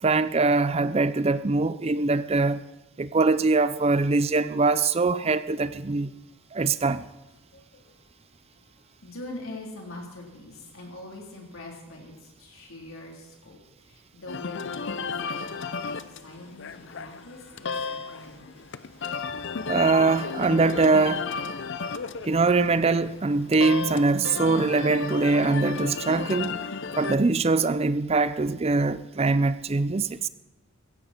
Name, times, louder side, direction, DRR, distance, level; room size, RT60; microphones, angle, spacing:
voice 1, 0.0-2.6 3.0-6.1 6.5-7.0 19.7-21.3 22.2-26.7 27.0-30.3, right 3 dB, 30° right, 0.5 m, -23 dB
voice 2, 7.5-8.2 8.5-18.5, left 2 dB, 70° left, 3.6 m, -44 dB
sound 1, 14.3-27.2, left 5 dB, 55° left, 0.6 m, -34 dB
15.5 x 15.5 x 4.4 m
head